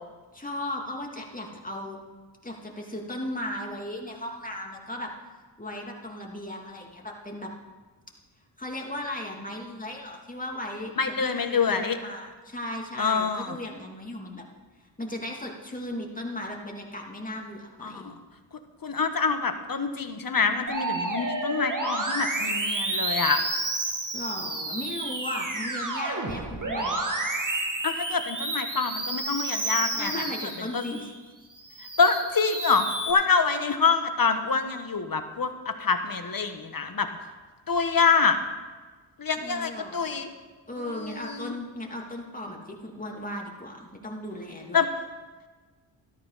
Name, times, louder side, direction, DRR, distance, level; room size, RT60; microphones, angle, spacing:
voice 1, 0.3-2.0 2.4-5.1 5.6-7.5 8.6-10.9 11.2-14.4 15.0-18.1 24.1-27.0 30.0-31.1 39.4-40.2 40.7-44.8, left 1 dB, 15° left, 0 dB, 2.8 m, -36 dB
voice 2, 11.0-12.0 13.0-13.6 17.8-18.1 18.8-23.4 27.8-30.1 30.7-30.9 32.0-37.1 37.7-38.4 39.2-40.3 40.7-41.5 44.7-44.9, left 5 dB, 45° left, 8 dB, 1.4 m, -26 dB
Musical instrument, 20.7-31.1 31.6-33.1, right 2 dB, 40° right, 2.4 m, -30 dB
13.0 x 13.0 x 4.2 m, 1.3 s
cardioid pair, 45°, 49 cm